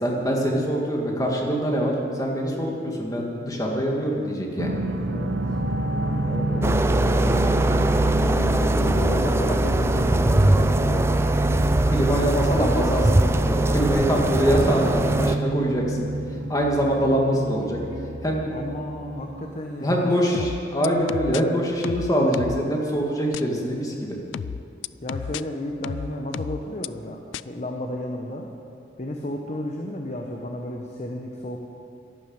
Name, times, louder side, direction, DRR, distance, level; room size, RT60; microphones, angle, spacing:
voice 1, 0.0-4.8 11.9-16.1 16.5-17.8 18.2-18.4 19.8-24.2, equal, 20° left, -1 dB, 1.9 m, -24 dB
sound 1, 4.6-20.0, right 2 dB, 75° right, 0.9 m, -28 dB
voice 2, 5.1-5.4 6.2-7.6 8.5-11.1 18.5-20.5 25.0-28.5 29.0-31.6, left 1 dB, 40° left, 2 dB, 0.9 m, -33 dB
sound 2, 6.6-15.4, right 1 dB, 15° right, 0.4 m, -21 dB
sound 3, 20.3-21.4 21.8-22.6 23.3-23.4 24.3-25.4 25.8-26.9 27.3-27.4, left 7 dB, 85° left, 0.3 m, -32 dB
11.5 x 11.0 x 7.9 m, 2.5 s
head